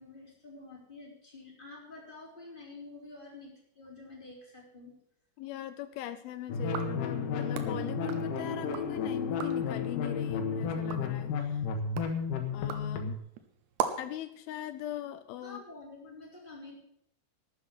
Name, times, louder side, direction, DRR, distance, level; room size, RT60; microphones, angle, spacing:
voice 1, 0.0-4.9 15.4-16.8, left 3 dB, 10° left, -3 dB, 3.4 m, -49 dB
voice 2, 5.4-11.6 12.5-13.2 14.0-15.6, left 13 dB, 80° left, 12 dB, 2.2 m, -40 dB
sound 1, 6.5-13.2, left 5 dB, 60° left, 2.7 m, -32 dB
sound 2, 6.6-8.9 9.2-9.7 10.2-14.2, right 9 dB, 85° right, 3.2 m, -40 dB
12.5 x 8.0 x 8.0 m, 0.71 s
omnidirectional pair, 4.8 m